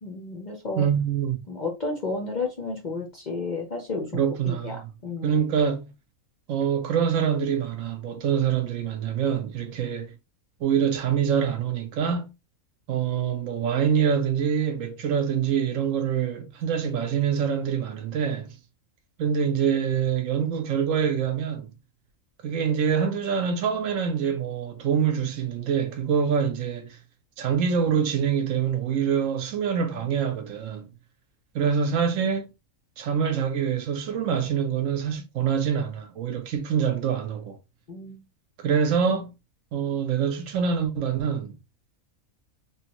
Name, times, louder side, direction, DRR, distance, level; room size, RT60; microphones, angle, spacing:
voice 1, 0.0-0.9 1.5-5.4 37.9-38.2, left 3 dB, 50° left, 0.5 m, -32 dB
voice 2, 0.7-1.4 4.1-4.9 5.2-5.9 6.5-10.1 10.6-12.3 12.9-18.5 19.2-21.7 22.4-27.0 27.4-30.9 31.5-32.5 33.0-37.6 38.6-39.3 39.7-41.6, right 7 dB, 70° right, 1.0 m, -25 dB
3.1 x 2.2 x 2.9 m
omnidirectional pair, 1.5 m